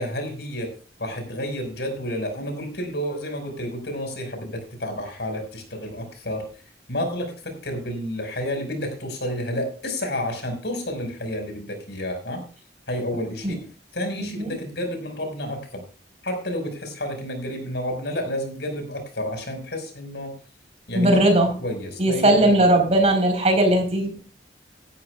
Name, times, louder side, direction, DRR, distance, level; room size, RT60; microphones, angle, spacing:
voice 1, 0.0-6.5 6.9-12.4 12.9-13.6 13.9-15.8 16.2-20.3 20.9-21.2 21.6-22.7, equal, 65° left, 5 dB, 5.5 m, -30 dB
voice 2, 20.9-21.5 22.0-24.2, right 1 dB, 35° right, 5 dB, 4.7 m, -18 dB
17.5 x 13.0 x 2.5 m, 0.36 s
head